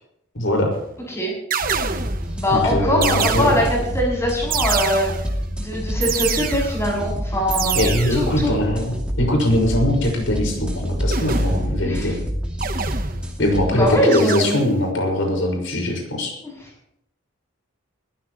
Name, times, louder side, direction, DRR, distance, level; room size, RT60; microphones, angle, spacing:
voice 1, 0.3-0.7 2.5-3.6 7.7-12.1 13.4-16.3, left 1 dB, 75° left, 0 dB, 5.8 m, -21 dB
sound 1, 0.7-1.0 1.5-2.3 3.0-3.9 4.5-5.4 6.0-6.9 7.5-8.4 11.1-11.9 12.6-13.5 14.1-14.9, right 7 dB, 45° right, 1.1 m, -27 dB
sound 2, 1.6-14.0, equal, 5° right, 2.6 m, -27 dB
voice 2, 2.4-5.1 5.6-7.8 8.1-8.6 11.8-12.1 13.7-14.6 16.4-16.5, left 1 dB, 15° left, -3 dB, 7.3 m, -22 dB
21.5 x 14.5 x 3.1 m, 0.73 s
head